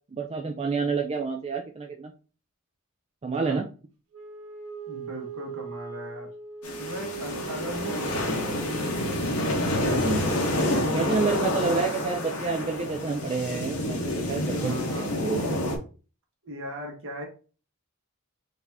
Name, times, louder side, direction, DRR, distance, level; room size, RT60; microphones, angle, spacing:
voice 1, 0.1-2.1 3.2-3.7 9.9-10.2 10.9-15.4, right 4 dB, 30° right, 2 dB, 0.4 m, -29 dB
voice 2, 3.3-3.7 4.9-6.3 6.8-9.2 11.4-11.7 14.5-15.2 16.4-17.3, equal, 65° right, 1 dB, 1.4 m, -39 dB
Wind instrument woodwind instrument, 4.1-10.9, right 6 dB, 85° right, 1.3 m, -40 dB
sound 1, 6.6-15.8, left 1 dB, 85° left, 1.1 m, -28 dB
4.0 x 2.8 x 3.6 m, 0.36 s
head